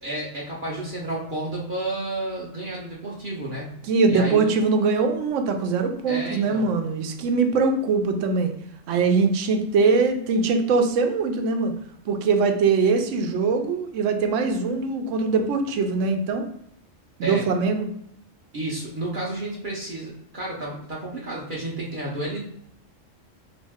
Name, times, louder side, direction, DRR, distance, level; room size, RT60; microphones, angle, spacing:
voice 1, 0.0-3.7 4.1-4.5 6.1-6.7 17.2-17.4 18.5-22.4, right 1 dB, 50° right, -4 dB, 0.7 m, -31 dB
voice 2, 3.8-8.5 8.9-11.8 12.1-16.5 17.2-17.9, right 4 dB, 80° right, 5 dB, 0.9 m, -22 dB
3.1 x 2.7 x 3.5 m, 0.72 s
omnidirectional pair, 1.3 m